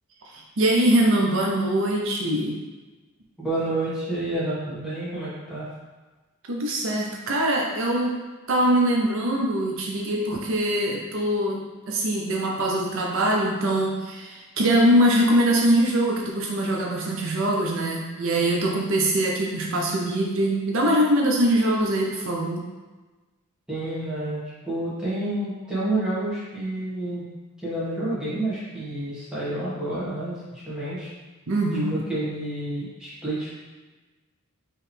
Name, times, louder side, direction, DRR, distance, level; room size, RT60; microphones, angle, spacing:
voice 1, 0.2-2.6 6.5-8.2 8.5-22.6 31.5-32.0, right 1 dB, 65° right, -1 dB, 0.6 m, -23 dB
voice 2, 3.4-5.7 23.7-24.4 24.6-27.2 27.6-31.1 31.9-33.5, right 1 dB, 5° right, -10 dB, 1.4 m, -29 dB
4.7 x 3.1 x 3.3 m, 1.2 s
head